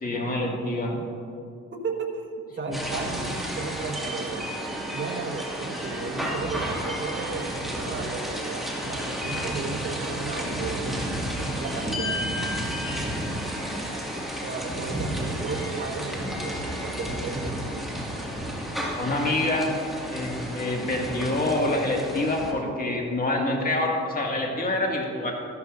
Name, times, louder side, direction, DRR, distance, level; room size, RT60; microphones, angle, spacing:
voice 1, 0.0-1.0 2.7-2.8 13.5-14.0 18.9-19.7 20.1-25.3, left 2 dB, 30° left, -1 dB, 2.2 m, -26 dB
voice 2, 1.7-2.3 2.6-4.5 4.9-10.9 11.4-12.3 14.4-17.9, right 4 dB, 40° right, 1 dB, 1.5 m, -34 dB
sound 1, 2.7-22.5, equal, ahead, 2.1 m, -31 dB
13.0 x 12.0 x 2.6 m, 2.5 s
cardioid pair, 90°, 30 cm